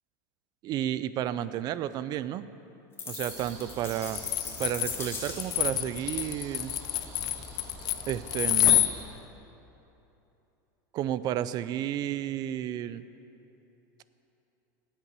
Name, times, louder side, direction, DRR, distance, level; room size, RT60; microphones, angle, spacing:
voice 1, 0.6-2.5 3.1-4.2 4.6-6.7 8.1-8.9 10.9-13.0, right 11 dB, 40° right, 15 dB, 0.4 m, -32 dB
sound 1, 3.0-5.8, left 4 dB, 25° left, 2.0 m, -40 dB
sound 2, 3.2-9.1, right 2 dB, 60° right, 2.2 m, -45 dB
sound 3, 4.2-8.9, left 13 dB, 40° left, 0.5 m, -27 dB
9.3 x 8.1 x 7.6 m, 2.9 s
supercardioid pair, 130°, 11 cm